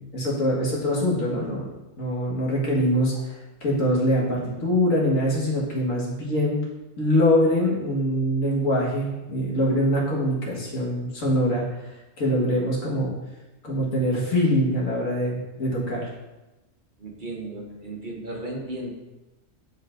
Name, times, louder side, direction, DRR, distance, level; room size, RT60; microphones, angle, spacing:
voice 1, 0.0-1.7 2.0-3.1 3.6-6.6 7.0-11.6 12.2-13.1 13.6-16.1, equal, 75° left, -4 dB, 1.9 m, -23 dB
voice 2, 17.0-18.9, right 2 dB, 40° right, -1 dB, 0.9 m, -35 dB
10.0 x 4.2 x 2.5 m, 1.0 s
omnidirectional pair, 1.4 m